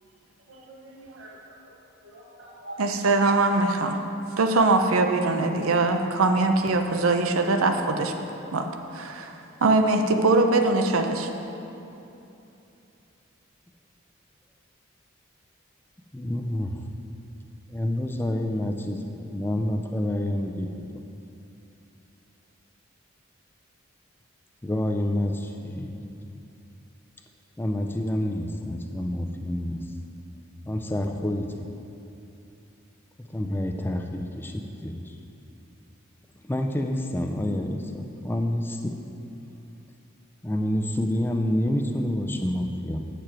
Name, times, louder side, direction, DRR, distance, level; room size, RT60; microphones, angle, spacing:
voice 1, 0.5-1.6 2.0-3.1, right 1 dB, 60° right, -5 dB, 1.0 m, -44 dB
voice 2, 2.8-4.0 4.4-8.1 8.5-8.7 8.9-9.3 9.6-11.3, right 3 dB, 90° right, 5 dB, 0.6 m, -22 dB
voice 3, 16.1-16.8 17.7-21.0 24.6-26.0 27.6-29.8 30.7-31.7 33.2-35.2 36.4-39.0 40.4-43.0, left 1 dB, 10° left, 4 dB, 0.4 m, -28 dB
8.8 x 6.7 x 4.5 m, 2.9 s
head